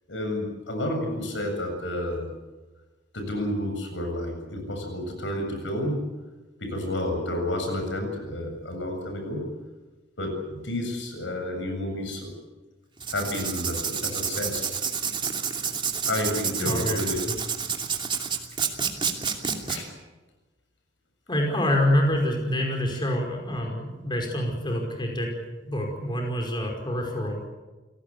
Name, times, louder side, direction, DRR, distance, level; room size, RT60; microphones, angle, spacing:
voice 1, 0.1-2.3 3.1-6.1 6.6-9.5 10.2-12.3 13.1-14.7 16.1-17.2 19.7-19.9 22.4-22.5, left 1 dB, 80° left, 4 dB, 7.6 m, -30 dB
Writing, 13.0-19.8, right 6 dB, 25° right, 2.7 m, -29 dB
voice 2, 16.6-17.0 17.3-17.4 21.3-25.3 25.6-27.4, left 1 dB, 25° left, 1 dB, 5.3 m, -26 dB
28.5 x 18.0 x 8.5 m, 1.2 s
head